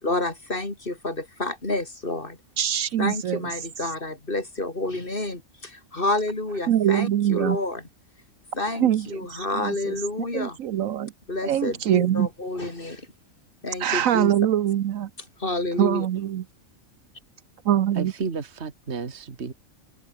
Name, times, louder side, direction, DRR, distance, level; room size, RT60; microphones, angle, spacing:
voice 1, 0.0-2.4 3.0-7.8 8.5-10.6 11.3-13.1 13.6-14.3 15.4-16.1, left 2 dB, 40° left, 4.2 m, -29 dB
voice 2, 2.6-3.5 6.7-7.6 8.8-10.0 10.3-11.1 11.4-12.3 13.8-15.1 15.8-16.4 17.6-18.1, right 11 dB, 75° right, 1.2 m, -23 dB
voice 3, 17.9-19.5, right 4 dB, 50° right, 2.2 m, -32 dB
omnidirectional pair, 1.4 m